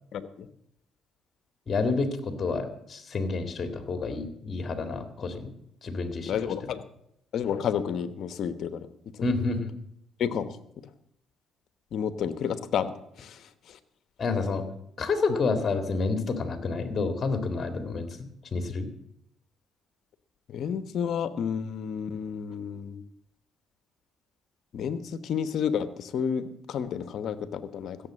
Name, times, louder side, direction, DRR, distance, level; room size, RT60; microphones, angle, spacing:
voice 1, 0.1-0.5 6.2-6.8 7.3-8.9 10.2-10.5 11.9-12.9 13.2-13.4 20.5-23.0 24.7-28.0, left 7 dB, 65° left, 13 dB, 1.1 m, -30 dB
voice 2, 1.7-5.5 5.8-6.5 9.2-9.7 14.2-14.6 15.0-18.9, left 4 dB, 40° left, 8 dB, 2.1 m, -29 dB
15.5 x 7.4 x 7.5 m, 0.76 s
supercardioid pair, 75°, 0 cm